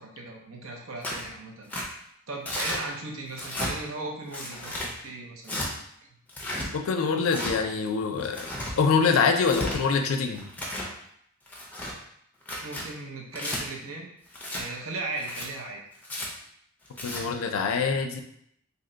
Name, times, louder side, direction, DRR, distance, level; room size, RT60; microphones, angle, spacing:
voice 1, 0.0-1.7 2.3-5.8 12.6-14.1 14.5-15.8, right 2 dB, 80° right, 0 dB, 0.7 m, -37 dB
Tearing, 1.0-1.3 1.7-1.8 2.5-2.8 3.3-3.7 4.3-4.9 5.4-5.7 6.3-6.7 7.3-7.5 8.2-8.7 9.3-9.8 10.3-10.9 11.5-11.9 12.4-12.8 13.3-13.6 14.3-14.6 15.2-15.5 16.0-16.3 16.9-17.2, left 1 dB, 10° left, 0.5 m, -33 dB
voice 2, 6.7-8.5 8.8-10.5 17.0-18.2, left 5 dB, 80° left, 5 dB, 0.4 m, -25 dB
2.8 x 2.1 x 3.8 m, 0.72 s
head